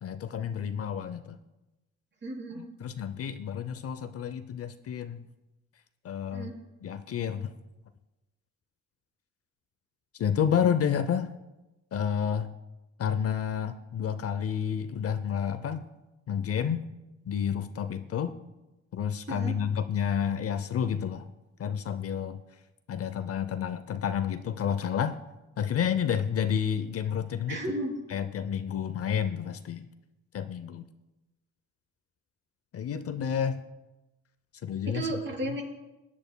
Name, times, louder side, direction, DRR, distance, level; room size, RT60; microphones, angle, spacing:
voice 1, 0.0-1.4 2.6-5.3 6.0-6.5 6.8-7.5 10.1-11.3 11.9-12.5 13.0-15.8 16.3-16.9 17.3-18.3 18.9-21.3 21.6-22.4 22.9-25.2 25.6-27.6 28.1-29.9 30.3-30.8 32.7-33.6 34.6-35.1 35.5-35.6, left 8 dB, 50° left, 11 dB, 0.6 m, -30 dB
voice 2, 2.2-2.7 6.3-6.6 19.3-19.6 27.5-28.0 34.9-35.6, right 1 dB, 40° right, -1 dB, 3.6 m, -34 dB
16.5 x 10.5 x 2.2 m, 1.0 s
cardioid pair, 90°, 30 cm